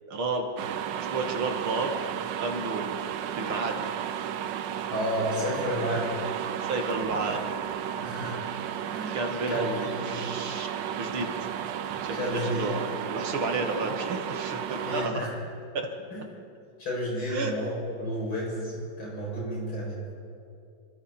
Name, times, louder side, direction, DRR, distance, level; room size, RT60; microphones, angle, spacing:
voice 1, 0.1-0.5 0.9-1.9 2.4-3.0 3.4-3.8 6.6-7.6 9.1-11.3 12.0-15.3 15.7-15.9 17.3-17.5, right 3 dB, 85° right, 3 dB, 3.0 m, -32 dB
sound 1, 0.6-15.1, right 9 dB, 70° right, 1.4 m, -33 dB
voice 2, 4.9-6.1 8.0-8.5 8.8-10.3 12.1-12.7 14.7-15.4 16.1-16.2 16.8-20.0, equal, 80° left, -5 dB, 8.5 m, -32 dB
27.0 x 25.0 x 4.5 m, 2.6 s
omnidirectional pair, 2.2 m